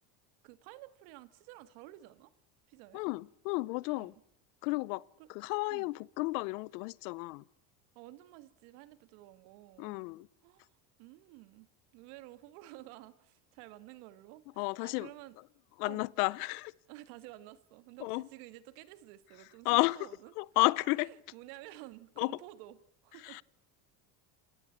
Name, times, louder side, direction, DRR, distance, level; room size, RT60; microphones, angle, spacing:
voice 1, 0.4-2.3 2.7-3.0 3.9-4.2 5.2-5.3 5.7-5.9 8.0-10.0 10.4-10.7 11.0-11.7 11.9-15.4 15.9-16.0 16.9-20.3 21.0-23.4, right 16 dB, 75° right, 2.1 m, -52 dB
voice 2, 2.9-4.1 4.6-5.0 5.3-7.4 9.8-10.3 14.6-15.1 15.8-16.7 18.0-18.3 19.6-20.1 20.4-21.1 22.2-22.4 23.2-23.4, left 24 dB, 80° left, 0.9 m, -32 dB
27.5 x 18.0 x 8.8 m
supercardioid pair, 110°, 46 cm